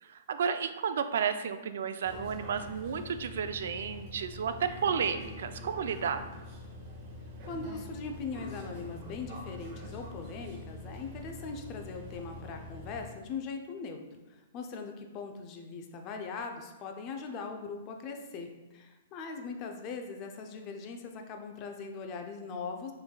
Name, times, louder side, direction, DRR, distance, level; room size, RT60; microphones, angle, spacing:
voice 1, 0.0-6.2, right 7 dB, 70° right, 10 dB, 0.3 m, -32 dB
sound 1, 2.0-13.1, left 1 dB, 35° right, 1.0 m, -45 dB
voice 2, 7.5-14.0 14.3-22.9, left 4 dB, 35° left, 4 dB, 0.5 m, -40 dB
6.1 x 3.3 x 2.2 m, 1.1 s
hypercardioid pair, 140°, 0 cm